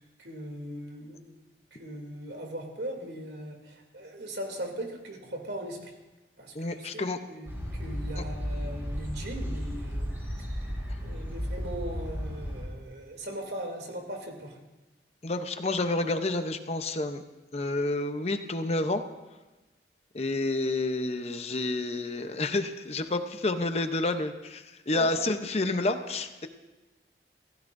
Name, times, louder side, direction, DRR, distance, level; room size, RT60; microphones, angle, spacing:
voice 1, 0.0-1.4 1.7-5.9 6.4-10.1 11.0-14.6 24.9-25.1, right 1 dB, 70° right, 1 dB, 2.9 m, -39 dB
voice 2, 6.5-7.2 15.2-17.2 17.5-19.0 20.1-26.5, left 2 dB, 35° left, 7 dB, 0.8 m, -29 dB
sound 1, 7.4-12.7, equal, 15° right, 4.5 m, -34 dB
26.0 x 16.0 x 2.6 m, 1.1 s
head